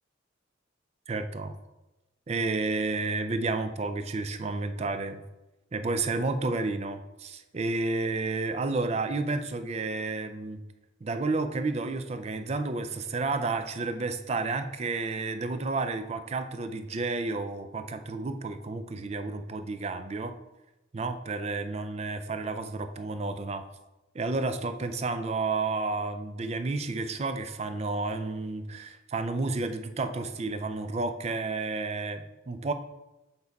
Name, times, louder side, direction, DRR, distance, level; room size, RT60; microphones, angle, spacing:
voice 1, 1.1-1.5 2.3-5.2 5.7-10.6 11.0-20.3 20.9-23.6 24.1-32.7, right 3 dB, 35° right, 9 dB, 0.4 m, -31 dB
6.9 x 4.0 x 4.1 m, 1.0 s
head